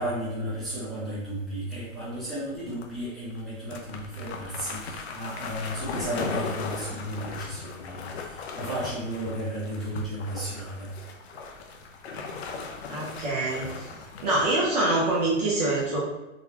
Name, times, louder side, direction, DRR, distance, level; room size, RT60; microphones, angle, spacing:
voice 1, 0.0-10.9, right 1 dB, ahead, -11 dB, 0.9 m, -34 dB
sound 1, 1.6-2.3 2.7-2.8 3.3-3.4 3.7-14.5, left 5 dB, 55° left, 0.6 m, -38 dB
voice 2, 12.9-13.9 14.2-16.0, right 2 dB, 30° right, -5 dB, 0.7 m, -25 dB
4.0 x 2.2 x 2.8 m, 1.0 s
hypercardioid pair, 145°, 40 cm